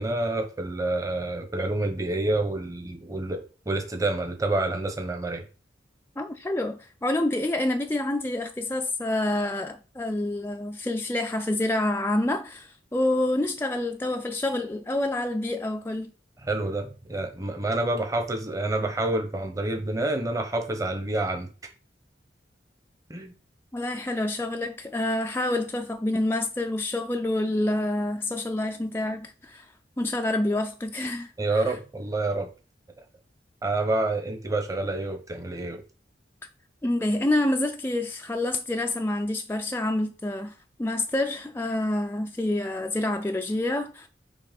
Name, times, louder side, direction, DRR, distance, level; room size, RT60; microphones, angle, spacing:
voice 1, 0.0-5.4 16.4-21.5 23.1-23.3 31.4-32.5 33.6-35.8, right 2 dB, 20° right, 0.9 m, -28 dB
voice 2, 6.2-16.1 23.7-29.7 30.0-31.7 36.8-44.1, left 1 dB, 10° left, 0.4 m, -27 dB
7.5 x 3.0 x 5.2 m
head